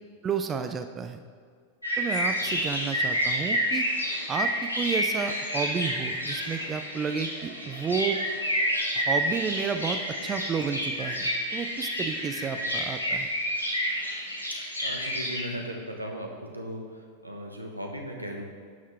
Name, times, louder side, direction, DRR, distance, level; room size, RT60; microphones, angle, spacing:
voice 1, 0.2-1.2 2.0-3.9 4.3-8.2 9.0-13.3, right 6 dB, 25° right, 8 dB, 0.5 m, -31 dB
sound 1, 1.8-15.4, equal, 85° left, 1.3 m, -29 dB
voice 2, 14.8-18.4, equal, 85° right, 1 dB, 1.2 m, -37 dB
11.0 x 6.4 x 3.5 m, 2.1 s
figure-of-eight pair, 90°, 0 cm